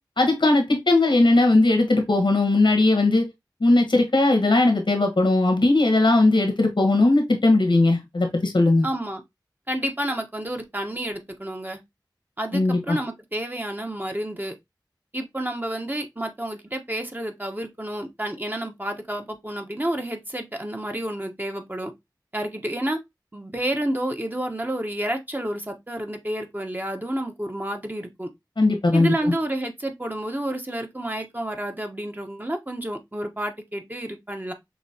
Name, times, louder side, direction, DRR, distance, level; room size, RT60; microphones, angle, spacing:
voice 1, 0.2-3.3 3.6-8.9 12.5-13.0 28.6-29.1, left 2 dB, 90° left, 1.4 m, -19 dB
voice 2, 8.8-9.2 9.7-11.8 12.4-14.5 15.1-21.9 22.3-23.0 23.3-28.3 28.9-34.5, right 1 dB, 25° right, 1.1 m, -30 dB
6.0 x 3.0 x 2.8 m
wide cardioid pair, 45°, 8 cm